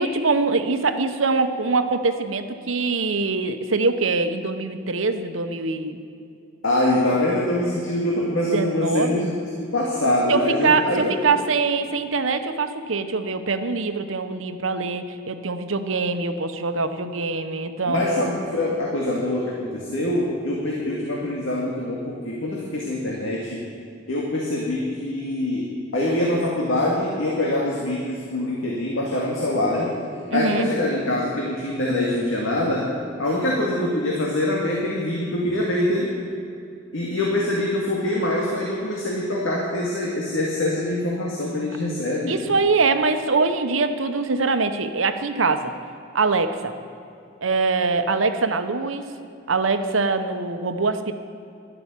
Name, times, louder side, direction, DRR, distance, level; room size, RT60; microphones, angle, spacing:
voice 1, 0.0-6.0 8.5-9.3 10.3-18.3 30.3-30.7 42.3-45.7 46.1-46.7 47.4-49.1 49.5-51.1, right 4 dB, 85° right, 8 dB, 1.0 m, -23 dB
voice 2, 6.6-9.3 9.6-11.2 17.8-23.6 24.1-29.9 30.3-32.9 33.2-36.1 36.9-42.3, left 1 dB, 80° left, -3 dB, 2.3 m, -24 dB
12.0 x 12.0 x 8.4 m, 2.6 s
head